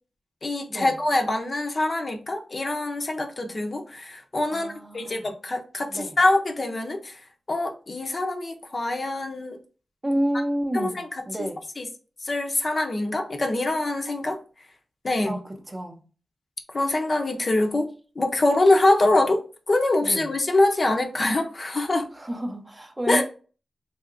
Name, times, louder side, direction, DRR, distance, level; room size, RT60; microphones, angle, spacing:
voice 1, 0.4-7.1 7.5-9.6 10.7-11.0 11.8-11.9 12.2-14.4 15.0-15.4 16.7-17.9 18.2-22.1 23.1-23.2, left 2 dB, 40° left, 0.6 m, -24 dB
voice 2, 4.5-5.3 5.9-6.2 10.0-11.6 15.2-16.0 20.0-20.3 22.1-23.2, right 1 dB, 20° right, 0.6 m, -30 dB
3.4 x 2.8 x 2.5 m
wide cardioid pair, 95°, 0 cm